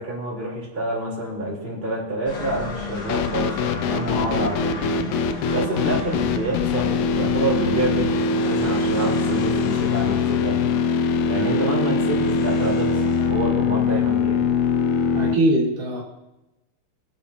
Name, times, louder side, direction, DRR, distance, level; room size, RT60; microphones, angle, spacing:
voice 1, 0.0-5.2 5.5-10.7 11.3-14.5, right 1 dB, 15° right, -5 dB, 4.1 m, -27 dB
sound 1, 2.3-13.3, left 3 dB, 70° left, 3.6 m, -34 dB
sound 2, 3.1-15.4, left 5 dB, 90° left, 2.3 m, -22 dB
voice 2, 15.1-16.0, right 1 dB, 80° right, -2 dB, 3.9 m, -21 dB
24.0 x 9.1 x 2.9 m, 0.96 s
omnidirectional pair, 3.7 m